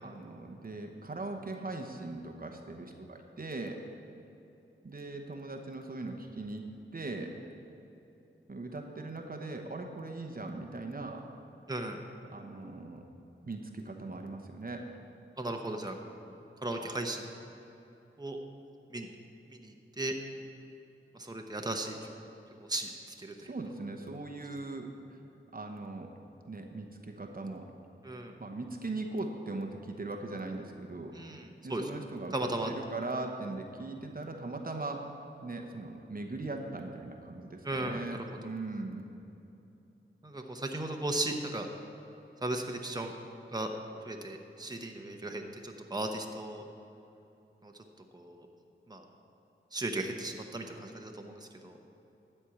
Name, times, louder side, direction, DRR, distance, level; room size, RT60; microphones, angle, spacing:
voice 1, 0.0-3.8 4.8-6.6 6.9-7.4 8.5-11.2 12.3-13.0 13.4-14.9 23.4-25.2 25.5-26.1 26.4-27.7 28.4-31.1 31.6-35.1 35.4-39.1, right 2 dB, 45° right, 3 dB, 0.9 m, -40 dB
voice 2, 11.7-12.0 15.4-16.0 16.6-17.3 18.2-18.4 18.9-19.1 19.5-20.1 21.2-22.0 22.6-22.9 23.2-23.3 28.0-28.3 31.1-31.9 32.3-32.7 37.6-38.0 40.2-41.7 42.4-43.1 43.5-43.7 44.0-46.6 47.6-47.7 48.1-48.5 48.9-49.0 49.7-51.8, right 2 dB, 20° right, 3 dB, 1.0 m, -36 dB
12.5 x 4.5 x 8.6 m, 2.9 s
wide cardioid pair, 55°, 21 cm